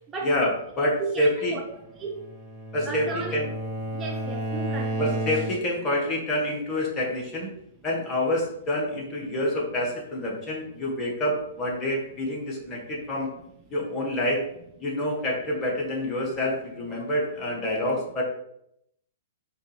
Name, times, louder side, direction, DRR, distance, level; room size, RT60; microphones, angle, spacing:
voice 1, 0.2-1.6 2.7-3.5 5.0-7.5 7.8-13.3 13.7-14.5 14.8-18.2, left 1 dB, 25° left, 1.2 m, -27 dB
voice 2, 1.0-2.2 2.9-3.4 3.9-5.2, right 4 dB, 20° right, 0.6 m, -35 dB
Bowed string instrument, 1.9-5.9, right 1 dB, ahead, 1.0 m, -32 dB
5.0 x 2.5 x 3.3 m
figure-of-eight pair, 110°, 0 cm